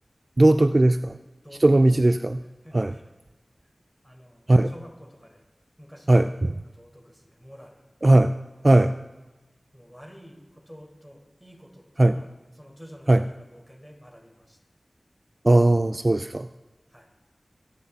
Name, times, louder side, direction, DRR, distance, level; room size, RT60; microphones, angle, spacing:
voice 1, 0.4-1.2 1.6-2.4 2.7-2.9 4.5-4.7 6.1-6.5 8.0-8.3 8.6-8.9 12.0-12.1 13.1-13.2 15.4-16.5, right 2 dB, 40° right, 11 dB, 0.4 m, -18 dB
voice 2, 1.4-1.9 2.6-3.0 3.6-3.7 4.0-5.4 5.8-6.4 6.7-7.9 9.7-14.6 16.9-17.1, equal, 5° left, 1 dB, 4.8 m, -49 dB
24.5 x 9.8 x 4.2 m, 1.1 s
wide cardioid pair, 50°, 0 cm